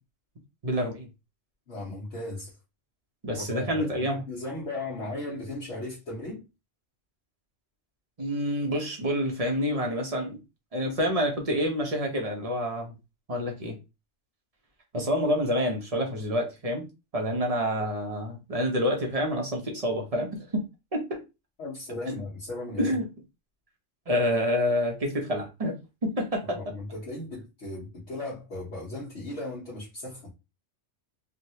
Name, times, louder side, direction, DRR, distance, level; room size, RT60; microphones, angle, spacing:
voice 1, 0.6-1.1 3.2-4.2 8.2-10.4 10.7-13.0 13.3-13.8 14.9-16.9 17.1-20.6 20.9-21.2 22.1-22.2 22.8-23.1 24.1-25.8 26.0-26.6, equal, 35° right, 0.9 m, -28 dB
voice 2, 1.7-2.5 3.3-6.5 21.6-23.0 26.5-30.3, left 2 dB, 65° left, 1.3 m, -36 dB
3.2 x 2.4 x 2.8 m
omnidirectional pair, 1.3 m